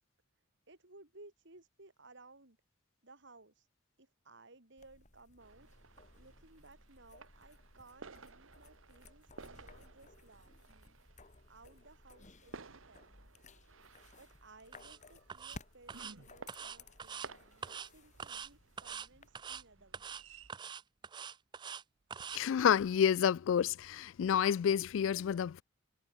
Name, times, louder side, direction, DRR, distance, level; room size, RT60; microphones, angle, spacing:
voice 1, 0.7-2.6 3.0-3.7 4.0-5.7 6.2-11.0 11.5-13.3 14.2-20.2, right 2 dB, 65° right, 4.2 m, -60 dB
sound 1, 4.8-19.3, left 2 dB, 40° left, 3.1 m, -58 dB
sound 2, 5.4-20.5, right 4 dB, 90° right, 1.4 m, -56 dB
sound 3, 14.7-15.0 15.3-15.6 15.9-16.1 16.5-17.3 17.6-17.9 18.2-18.5 18.8-19.1 19.3-19.6 19.9-20.2 20.5-21.8 22.1-22.4, right 7 dB, 25° right, 0.3 m, -44 dB
voice 2, 22.3-25.6, left 8 dB, 70° left, 0.3 m, -29 dB
head